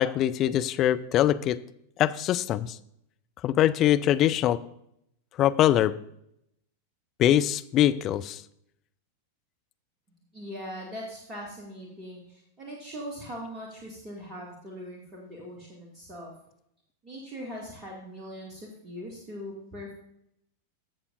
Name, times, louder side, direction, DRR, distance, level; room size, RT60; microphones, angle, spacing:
voice 1, 0.0-1.6 2.0-2.8 3.4-4.6 5.4-6.0 7.2-8.4, left 12 dB, 35° left, 12 dB, 0.4 m, -23 dB
voice 2, 10.3-16.3 17.0-19.9, equal, 25° right, -2 dB, 2.2 m, -41 dB
15.0 x 7.0 x 2.6 m, 0.75 s
figure-of-eight pair, 90°, 0 cm